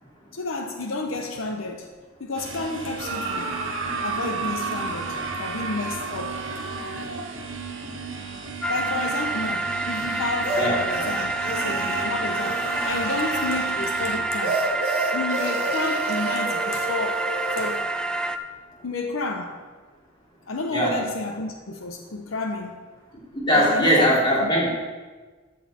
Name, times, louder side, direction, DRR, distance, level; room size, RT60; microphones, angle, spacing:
voice 1, 0.3-1.9 2.2-3.5 4.0-6.6 8.7-14.6 15.1-17.9 18.8-19.6 20.5-22.8 23.5-24.5, left 3 dB, 80° left, 4 dB, 0.8 m, -31 dB
sound 1, 2.4-14.2, right 3 dB, 70° right, 1.2 m, -37 dB
sound 2, 3.0-7.4 10.4-13.7 14.4-17.8, right 3 dB, 90° right, 1.5 m, -31 dB
sound 3, 8.6-18.4, right 3 dB, 5° left, 0.3 m, -28 dB
voice 2, 23.3-24.7, equal, 25° left, -5 dB, 2.8 m, -20 dB
13.0 x 6.2 x 4.3 m, 1.4 s
head